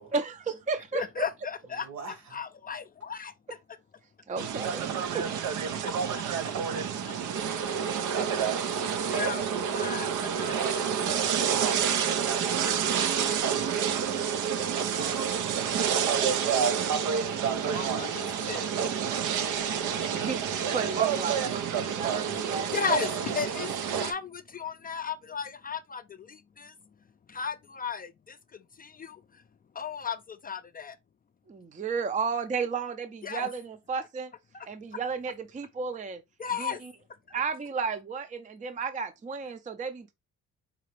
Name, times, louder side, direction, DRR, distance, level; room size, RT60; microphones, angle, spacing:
voice 1, 0.1-1.2 4.3-4.9 5.1-5.3 20.1-20.4 20.7-23.0 31.5-34.3 34.6-36.2 36.6-36.9 37.3-40.1, right 5 dB, 25° right, 0.5 m, -33 dB
voice 2, 0.9-1.9 2.3-3.3 6.1-6.8 9.1-11.1 17.7-18.7 19.6-19.7 22.7-26.7 27.3-29.2 29.8-31.0 33.2-33.5 34.5-34.7 36.4-36.8 37.3-37.4, left 6 dB, 30° left, 0.4 m, -35 dB
voice 3, 1.7-2.4 14.9-16.3 17.0-17.1, right 5 dB, 65° right, 1.7 m, -43 dB
sound 1, 4.4-24.1, right 7 dB, 85° right, 0.7 m, -28 dB
4.8 x 2.8 x 3.1 m
cardioid pair, 90°, 30 cm